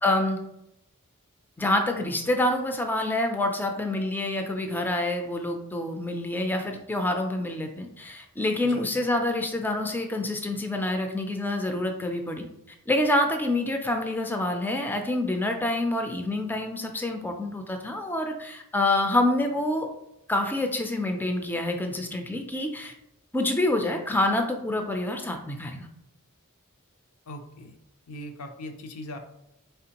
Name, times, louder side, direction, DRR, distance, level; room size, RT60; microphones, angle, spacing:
voice 1, 0.0-0.4 1.6-12.5 12.9-19.9 20.3-22.9 23.3-25.9, left 1 dB, 10° left, 4 dB, 0.3 m, -27 dB
voice 2, 27.3-27.8 28.1-29.2, left 1 dB, 80° left, 5 dB, 0.6 m, -40 dB
4.4 x 3.3 x 2.9 m, 0.84 s
head